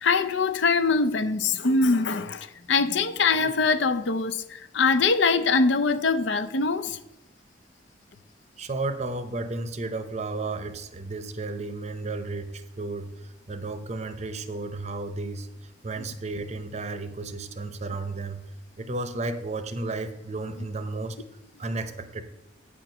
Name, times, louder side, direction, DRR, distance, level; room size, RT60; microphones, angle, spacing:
voice 1, 0.0-7.0, left 4 dB, 70° left, 0.6 m, -23 dB
voice 2, 8.6-15.5 15.8-18.4 18.8-21.2 21.6-22.2, right 2 dB, 35° right, 0.6 m, -33 dB
8.6 x 4.5 x 6.5 m
head